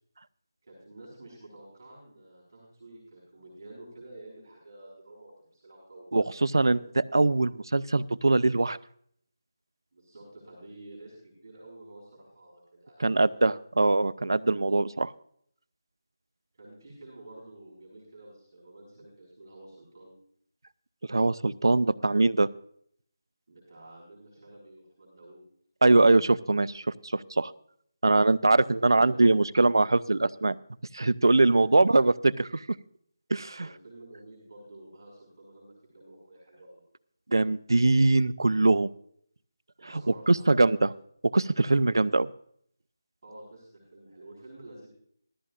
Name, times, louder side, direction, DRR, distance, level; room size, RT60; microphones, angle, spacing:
voice 1, 0.6-6.4 9.9-13.4 16.6-20.1 23.5-25.4 28.6-29.4 31.5-32.1 33.6-36.8 39.8-40.9 43.2-44.9, right 1 dB, 50° right, -4 dB, 5.3 m, -50 dB
voice 2, 6.1-8.8 13.0-15.1 21.1-22.5 25.8-27.5 28.0-30.6 30.9-32.7 33.3-33.7 37.3-38.9 40.3-40.9 41.2-42.3, right 2 dB, 90° right, 18 dB, 0.5 m, -22 dB
16.5 x 14.0 x 2.4 m, 0.66 s
figure-of-eight pair, 170°, 2 cm